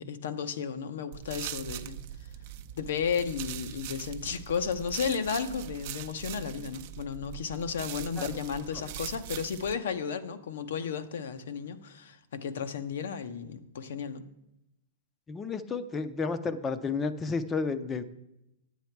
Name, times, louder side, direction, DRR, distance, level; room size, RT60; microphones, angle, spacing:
voice 1, 0.0-2.0 2.8-14.2, left 6 dB, 75° left, 10 dB, 0.8 m, -33 dB
sound 1, 1.1-9.7, right 12 dB, 50° right, 0.6 m, -41 dB
voice 2, 15.3-18.0, left 4 dB, 15° left, 12 dB, 0.5 m, -31 dB
9.8 x 8.3 x 4.6 m, 0.89 s
hypercardioid pair, 155°, 0 cm